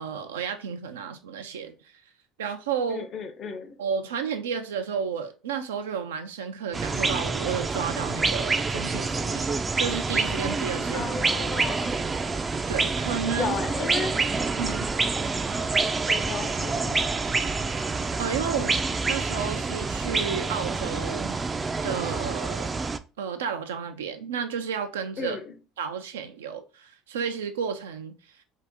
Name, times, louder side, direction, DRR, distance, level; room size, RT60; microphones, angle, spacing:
voice 1, 0.0-1.8 2.4-3.1 3.8-11.1 12.7-13.5 14.6-14.9 18.2-18.8 19.1-21.3 21.8-22.8 23.2-25.4 25.8-28.1, right 7 dB, 90° right, 0.4 m, -32 dB
voice 2, 2.9-3.8 10.9-12.0 13.3-14.2 16.1-17.0 25.2-25.6, left 5 dB, 45° left, 0.6 m, -34 dB
sound 1, 6.7-23.0, right 4 dB, 25° right, 0.3 m, -27 dB
2.8 x 2.5 x 3.5 m
hypercardioid pair, 75°, 0 cm